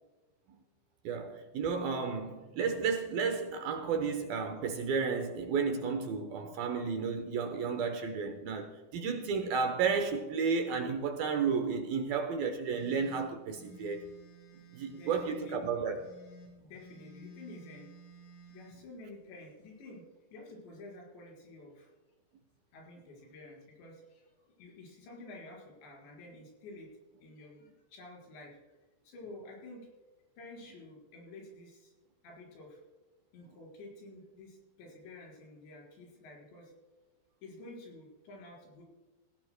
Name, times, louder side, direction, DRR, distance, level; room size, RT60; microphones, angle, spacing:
voice 1, 1.0-14.1 14.7-16.0, right 5 dB, 70° right, 2.4 m, -32 dB
sound 1, 12.7-15.5 16.0-18.8, right 1 dB, 70° left, 5.5 m, -54 dB
voice 2, 14.9-15.9 16.6-17.9 18.5-20.1 20.3-21.9 22.7-26.9 27.2-28.6 29.0-29.9 30.4-31.9 32.2-32.8 33.3-36.7 37.4-38.8, left 2 dB, 85° left, 6.9 m, -50 dB
17.5 x 16.5 x 2.2 m
omnidirectional pair, 5.0 m